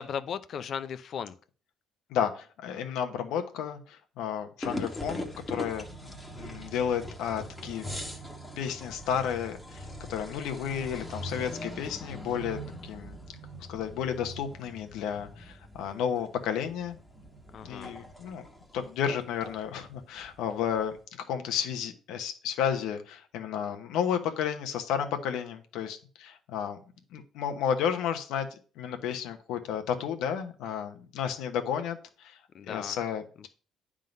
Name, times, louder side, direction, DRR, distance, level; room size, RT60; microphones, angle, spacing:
voice 1, 0.0-1.4 17.5-17.9 32.5-33.0, left 7 dB, 50° left, 0.5 m, -36 dB
voice 2, 2.1-7.9 8.6-13.2 13.7-17.0 17.6-18.5 18.7-21.0 21.3-26.8 27.1-28.5 28.8-32.4 32.7-33.5, left 8 dB, 85° left, 1.1 m, -32 dB
sound 1, 4.6-21.0, equal, 5° left, 1.2 m, -42 dB
9.3 x 3.8 x 5.3 m
cardioid pair, 120°, 0 cm